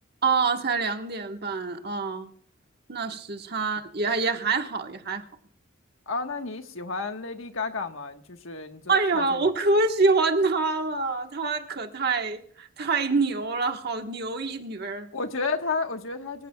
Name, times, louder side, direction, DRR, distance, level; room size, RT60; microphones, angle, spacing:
voice 1, 0.2-2.3 2.9-5.2 8.9-15.1, right 3 dB, 50° right, 5 dB, 1.3 m, -26 dB
voice 2, 6.1-9.5 15.1-16.5, left 4 dB, 70° left, 6 dB, 1.4 m, -32 dB
24.5 x 15.5 x 2.3 m, 0.62 s
head